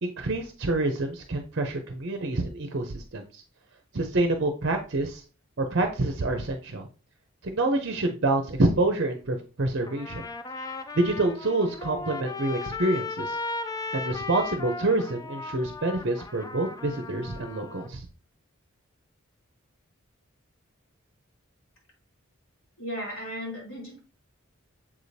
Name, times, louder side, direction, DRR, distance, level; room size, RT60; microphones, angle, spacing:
voice 1, 0.0-3.4 3.9-5.2 5.6-6.9 7.4-10.2 10.7-13.4 13.9-18.0, right 2 dB, 55° right, 5 dB, 0.7 m, -27 dB
Trumpet, 9.9-17.9, left 3 dB, 15° left, 0.3 m, -36 dB
voice 2, 22.8-24.0, equal, 70° left, -4 dB, 3.3 m, -35 dB
7.3 x 4.8 x 2.7 m, 0.36 s
head